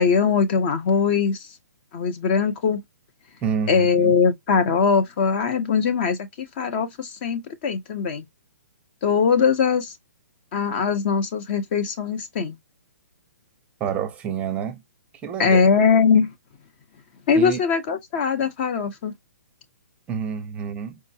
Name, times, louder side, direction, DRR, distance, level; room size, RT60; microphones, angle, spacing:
voice 1, 0.0-1.5 1.9-2.8 3.7-8.2 9.0-9.9 10.5-12.6 15.4-16.3 17.3-19.1, left 6 dB, 35° left, 0.6 m, -21 dB
voice 2, 3.4-4.2 13.8-14.8 15.2-15.6 17.4-17.6 20.1-21.0, right 7 dB, 15° right, 0.6 m, -28 dB
4.6 x 2.0 x 2.7 m
hypercardioid pair, 155°, 9 cm